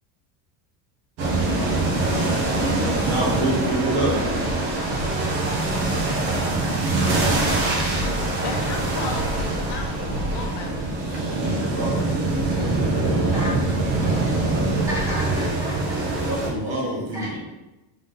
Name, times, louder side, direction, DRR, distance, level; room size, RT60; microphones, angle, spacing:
sound 1, 1.2-16.5, right 2 dB, 90° right, 1.3 m, -23 dB
voice 1, 2.7-4.2 11.2-13.3 16.3-17.4, right 1 dB, 40° right, -3 dB, 1.2 m, -27 dB
voice 2, 8.4-12.4, left 3 dB, 50° left, 2 dB, 0.6 m, -36 dB
voice 3, 13.0-13.7 14.9-16.1 16.4-17.4, equal, 5° right, -7 dB, 1.0 m, -34 dB
3.7 x 3.6 x 3.8 m, 1.0 s
cardioid pair, 180°, 50 cm